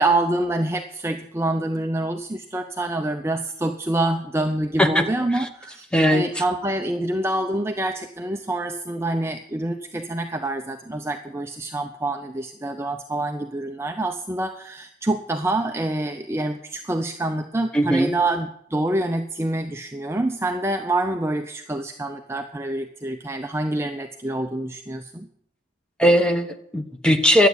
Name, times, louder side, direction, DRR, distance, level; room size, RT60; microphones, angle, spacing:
voice 1, 0.0-25.3, right 2 dB, 15° right, 5 dB, 0.5 m, -26 dB
voice 2, 5.9-6.2 17.7-18.1 26.0-27.5, equal, 5° left, 5 dB, 1.0 m, -18 dB
11.5 x 8.2 x 8.1 m, 0.72 s
head